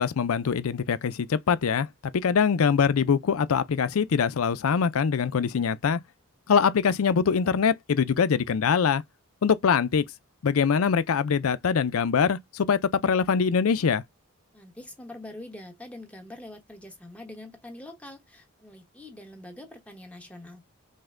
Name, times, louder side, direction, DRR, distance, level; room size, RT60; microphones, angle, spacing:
voice 1, 0.0-1.9 2.1-6.0 6.5-9.0 9.4-10.0 10.4-14.0, left 6 dB, 70° left, 0.4 m, -23 dB
voice 2, 14.5-20.6, left 1 dB, 5° left, 1.0 m, -44 dB
5.4 x 2.2 x 3.6 m
head